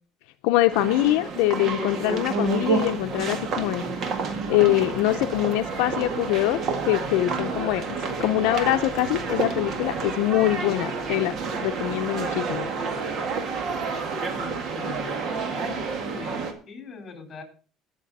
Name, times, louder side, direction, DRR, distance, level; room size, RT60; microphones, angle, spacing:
voice 1, 0.4-3.8 4.5-11.3 11.6-12.7, left 16 dB, 90° left, 8 dB, 0.6 m, -24 dB
sound 1, 0.7-16.5, right 4 dB, 50° right, 1.8 m, -29 dB
voice 2, 14.3-17.4, left 4 dB, 30° left, 5 dB, 3.9 m, -41 dB
19.5 x 6.7 x 4.1 m, 0.39 s
cardioid pair, 130°, 0 cm